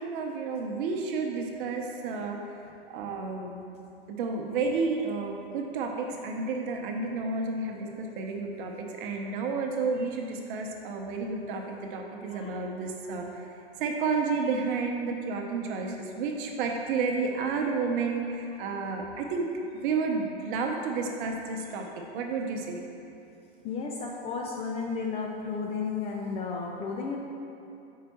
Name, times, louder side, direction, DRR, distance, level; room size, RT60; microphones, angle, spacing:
voice 1, 0.0-2.4 2.9-3.6 4.1-13.4 13.8-19.5 19.8-21.8 22.1-22.8, right 4 dB, 55° right, 2 dB, 0.9 m, -31 dB
voice 2, 23.6-27.2, left 5 dB, 20° left, 0 dB, 0.3 m, -33 dB
5.0 x 4.7 x 4.3 m, 2.8 s
hypercardioid pair, 110°, 32 cm